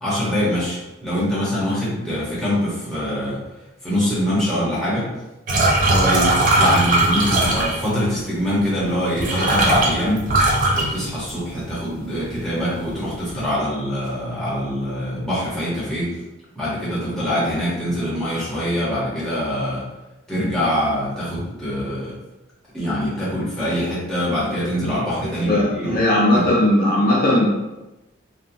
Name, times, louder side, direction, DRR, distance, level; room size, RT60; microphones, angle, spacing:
voice 1, 0.0-3.4 3.8-5.0 5.8-10.2 10.7-16.1 16.5-19.8 20.3-22.1 22.7-26.0 26.3-26.5, equal, ahead, -9 dB, 0.8 m, -24 dB
sound 1, 5.5-8.0 8.8-8.9 9.2-11.6 11.9-12.4 12.7-13.4, right 2 dB, 40° right, 0.5 m, -19 dB
voice 2, 25.5-27.5, left 1 dB, 45° left, -5 dB, 0.5 m, -17 dB
2.8 x 2.1 x 2.6 m, 1.0 s
head